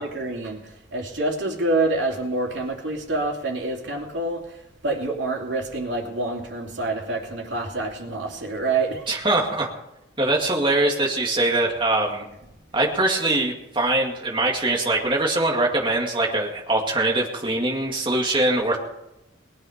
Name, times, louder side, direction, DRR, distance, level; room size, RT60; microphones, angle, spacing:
voice 1, 0.0-9.1, right 2 dB, 70° right, 0 dB, 3.1 m, -27 dB
voice 2, 9.1-9.7 10.2-12.3 12.7-18.8, right 2 dB, 25° right, -1 dB, 2.2 m, -22 dB
20.0 x 9.8 x 5.1 m, 0.89 s
head